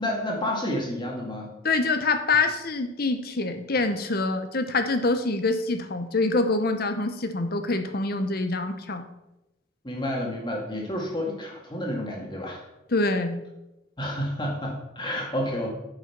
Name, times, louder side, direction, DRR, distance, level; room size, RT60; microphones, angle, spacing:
voice 1, 0.0-1.5 9.8-12.6 14.0-15.7, left 1 dB, 25° left, -1 dB, 2.0 m, -30 dB
voice 2, 1.6-9.0 12.9-13.4, left 3 dB, 50° left, 9 dB, 0.8 m, -25 dB
9.2 x 5.7 x 5.9 m, 0.94 s
head